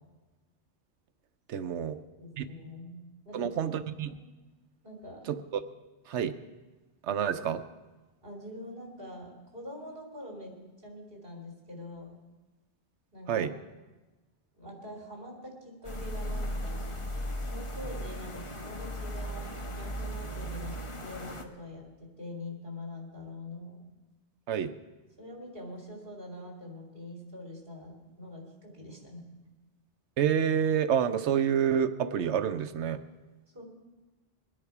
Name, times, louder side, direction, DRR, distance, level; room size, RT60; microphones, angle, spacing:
voice 1, 1.5-2.0 2.4-2.5 3.3-4.1 5.3-5.6 6.1-6.3 7.0-7.6 13.3-13.5 24.5-24.7 30.2-33.0, right 8 dB, 85° right, 11 dB, 1.0 m, -28 dB
voice 2, 2.2-3.6 4.0-4.2 4.8-5.3 8.2-10.5 10.8-12.2 13.1-13.5 14.6-16.9 17.5-23.8 25.2-29.2 33.5-33.6, left 1 dB, 55° right, 0 dB, 3.4 m, -44 dB
sound 1, 15.8-21.4, equal, 30° left, 1.0 m, -36 dB
22.5 x 10.0 x 4.8 m, 1.2 s
omnidirectional pair, 1.1 m